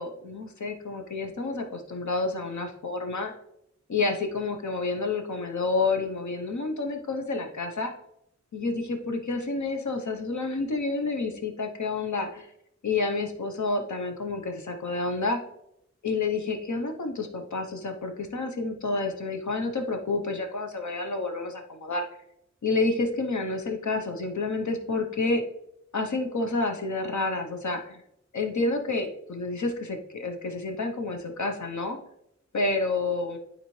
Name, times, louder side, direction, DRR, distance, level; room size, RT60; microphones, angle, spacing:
voice 1, 0.0-3.3 3.9-7.9 8.5-12.5 12.8-15.4 16.0-22.1 22.6-25.4 25.9-28.0 28.3-32.0 32.5-33.4, left 3 dB, 80° left, 4 dB, 0.9 m, -29 dB
12.0 x 4.0 x 3.2 m, 0.78 s
wide cardioid pair, 95°, 29 cm